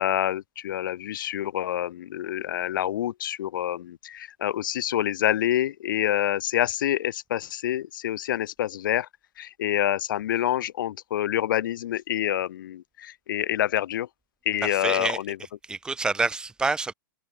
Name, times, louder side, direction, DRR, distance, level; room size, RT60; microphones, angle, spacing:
voice 1, 0.0-9.1 9.4-14.1 14.5-15.4, left 12 dB, 65° left, 0.8 m, -27 dB
voice 2, 14.6-15.2 15.7-16.9, right 3 dB, 5° right, 0.4 m, -27 dB
hypercardioid pair, 120°, 11 cm